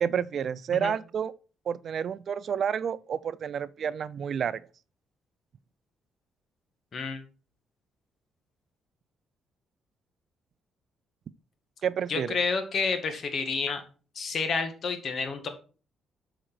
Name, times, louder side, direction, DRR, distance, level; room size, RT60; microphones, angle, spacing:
voice 1, 0.0-1.3 1.7-4.6 11.8-12.4, right 8 dB, 55° right, 0.4 m, -29 dB
voice 2, 12.1-13.8 14.2-15.5, left 4 dB, 55° left, 1.9 m, -29 dB
7.7 x 5.0 x 6.0 m
cardioid pair, 90°, 0 cm